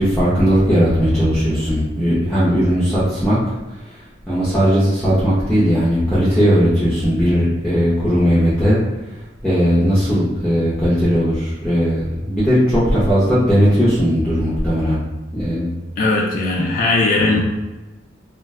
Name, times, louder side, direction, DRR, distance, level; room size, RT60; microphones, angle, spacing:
voice 1, 0.0-3.4 4.3-8.8 9.4-15.0 15.3-15.7 17.2-17.3, equal, 5° left, -11 dB, 0.6 m, -17 dB
voice 2, 16.0-17.4, left 2 dB, 45° left, -2 dB, 0.4 m, -18 dB
2.4 x 2.1 x 3.5 m, 1.1 s
head